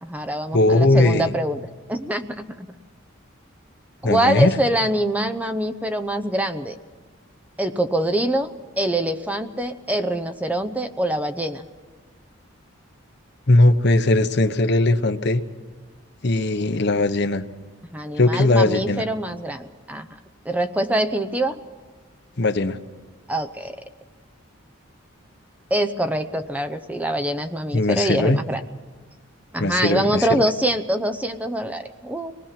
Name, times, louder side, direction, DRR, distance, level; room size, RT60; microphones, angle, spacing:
voice 1, 0.0-1.6 1.9-2.7 4.0-6.8 7.6-11.7 17.9-20.1 20.4-21.6 23.3-23.8 25.7-28.6 29.5-32.3, right 1 dB, 5° right, 8 dB, 0.7 m, -24 dB
voice 2, 0.5-1.3 4.0-4.5 13.5-15.4 16.2-17.4 18.2-19.0 22.4-22.8 27.7-28.4 29.6-30.4, left 2 dB, 55° left, 9 dB, 1.0 m, -19 dB
24.5 x 20.0 x 5.9 m, 1.4 s
head